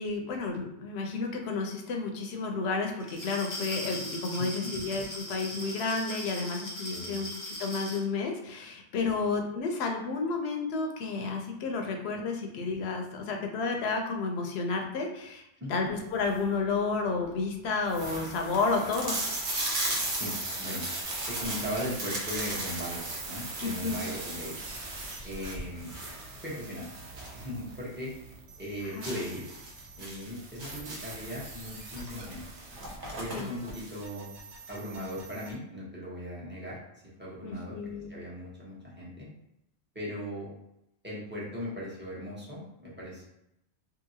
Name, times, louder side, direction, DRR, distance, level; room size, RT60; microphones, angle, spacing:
voice 1, 0.0-7.3 7.6-15.4 15.7-19.2 23.6-24.0 29.0-29.1 33.3-33.5 37.4-38.1, left 4 dB, 70° left, 3 dB, 0.8 m, -31 dB
Glass, 3.0-8.0, equal, 20° left, 0.5 m, -39 dB
voice 2, 4.4-4.7 6.9-7.2 15.6-15.9 20.1-20.8 21.3-23.0 23.3-24.6 25.2-25.9 26.4-26.9 27.3-28.1 28.6-29.4 30.0-32.4 33.2-34.3 34.7-36.8 37.2-37.8 38.1-39.3 39.9-40.5 41.0-43.3, equal, 10° right, -7 dB, 0.8 m, -38 dB
sound 1, 16.0-16.5 17.2-17.3 17.5-17.6 17.9-27.4 27.8-27.9 28.3-28.4 29.0-31.2 32.2-32.3 32.6-33.7, right 2 dB, 50° right, 0.8 m, -36 dB
sound 2, 21.0-35.5, right 3 dB, 80° right, 1.0 m, -44 dB
2.8 x 2.6 x 2.7 m, 0.84 s
omnidirectional pair, 1.2 m